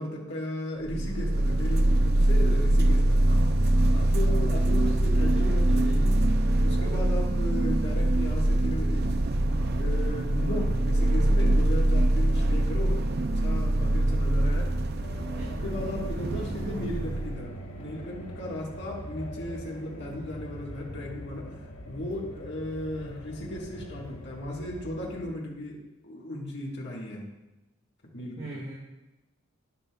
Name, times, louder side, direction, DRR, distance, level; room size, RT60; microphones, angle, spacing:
voice 1, 0.0-3.4 3.9-6.2 6.6-9.1 9.7-14.7 15.4-27.2 28.1-28.5, left 1 dB, 55° left, -3 dB, 1.7 m, -36 dB
sound 1, 0.8-17.4, right 1 dB, 50° right, 0.5 m, -24 dB
sound 2, 15.0-25.3, equal, 90° left, 1.8 m, -42 dB
voice 2, 15.4-15.7 28.4-28.7, right 2 dB, 35° right, -5 dB, 1.4 m, -41 dB
11.5 x 9.4 x 2.3 m, 1.0 s
head